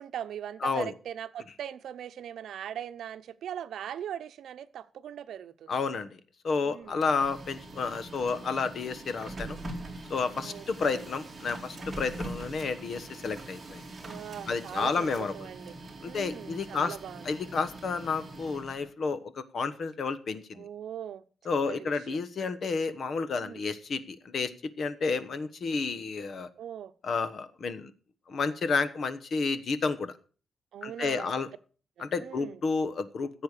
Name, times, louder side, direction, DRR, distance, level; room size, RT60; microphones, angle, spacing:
voice 1, 0.0-5.8 6.7-7.0 10.4-10.6 10.9-11.0 12.0-12.2 14.0-15.7 16.0-17.4 20.5-21.2 21.7-22.2 23.4-23.6 26.6-26.9 30.7-31.3 32.0-32.6, right 10 dB, 80° right, 0.8 m, -40 dB
voice 2, 0.6-0.9 5.7-6.2 6.4-9.6 10.1-13.8 14.5-15.3 16.0-17.0 17.2-20.6 21.4-26.5 27.0-27.9 28.3-30.1 30.8-31.5 32.0-33.4, left 4 dB, 45° left, 1.1 m, -31 dB
Printer, 6.8-18.9, right 2 dB, 15° right, 3.1 m, -43 dB
15.5 x 7.9 x 6.7 m
wide cardioid pair, 170°, 0 cm